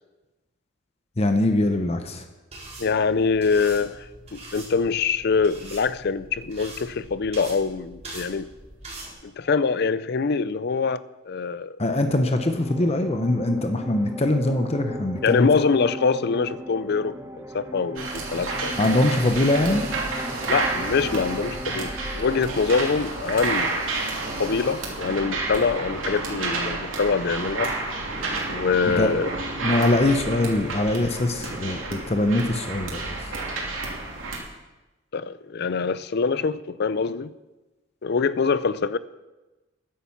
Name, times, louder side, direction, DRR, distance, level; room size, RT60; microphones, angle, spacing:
voice 1, 1.2-2.2 11.8-15.5 18.8-19.8 28.9-29.1 29.6-33.0, left 1 dB, 30° left, 6 dB, 0.9 m, -22 dB
sound 1, 2.5-9.1, right 2 dB, 35° right, 4.3 m, -42 dB
voice 2, 2.8-4.1 4.3-8.5 9.2-11.8 15.2-19.0 20.5-24.0 24.4-27.7 28.5-29.3 35.1-37.3 38.0-39.0, left 5 dB, 55° left, 16 dB, 0.5 m, -24 dB
sound 2, 12.1-25.4, equal, 15° right, 0.8 m, -38 dB
sound 3, 18.0-34.4, right 3 dB, 90° right, 2.9 m, -30 dB
10.5 x 10.0 x 7.2 m, 1.1 s
head